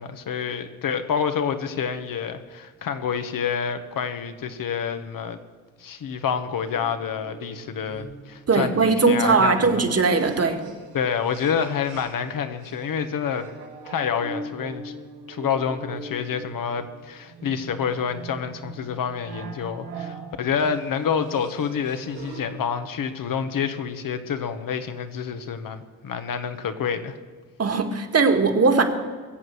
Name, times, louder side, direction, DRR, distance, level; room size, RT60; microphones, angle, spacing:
voice 1, 0.0-5.4 5.8-9.8 10.9-13.5 13.8-14.9 15.3-27.2, left 7 dB, 50° left, 8 dB, 1.5 m, -28 dB
sound 1, 6.6-12.3 12.6-22.6, right 3 dB, 80° right, 4.9 m, -41 dB
voice 2, 8.5-10.6 27.6-28.8, right 4 dB, 35° right, 6 dB, 2.0 m, -19 dB
22.0 x 7.9 x 6.4 m, 1.4 s
hypercardioid pair, 50°, 41 cm